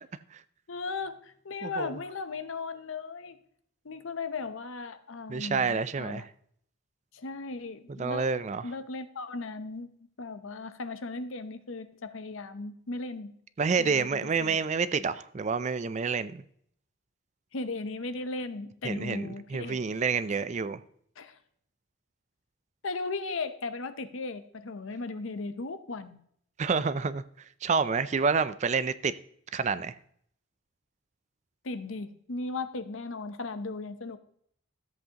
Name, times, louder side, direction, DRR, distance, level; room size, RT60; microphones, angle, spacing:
voice 1, 0.7-3.4 3.8-6.2 7.1-8.3 8.6-13.3 13.8-14.1 14.4-14.6 17.5-19.8 20.3-20.4 21.2-21.4 22.8-26.2 31.6-34.2, left 3 dB, 70° left, 0.7 m, -37 dB
voice 2, 1.6-1.9 5.3-6.2 8.0-8.6 13.6-16.4 18.8-20.8 26.6-27.2 27.6-29.1 29.5-29.9, right 5 dB, 35° right, 0.4 m, -28 dB
13.5 x 7.9 x 2.9 m
head